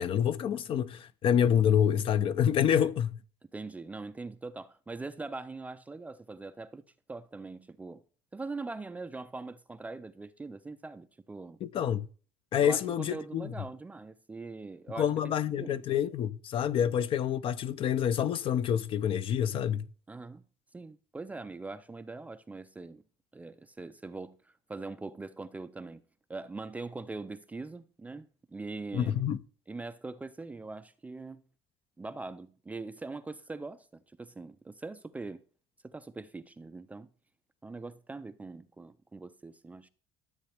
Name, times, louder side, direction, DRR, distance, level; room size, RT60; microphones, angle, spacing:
voice 1, 0.0-3.2 11.6-12.1 12.5-13.5 15.0-19.9 28.9-29.4, left 9 dB, 40° left, 0.6 m, -27 dB
voice 2, 3.5-6.8 7.1-8.0 8.3-11.6 12.6-15.8 20.1-20.4 20.7-23.0 23.3-26.0 26.3-29.2 29.7-31.4 32.0-35.4 35.8-37.1 37.6-39.9, right 3 dB, 10° right, 0.4 m, -42 dB
13.0 x 7.9 x 3.4 m
cardioid pair, 145°, 13 cm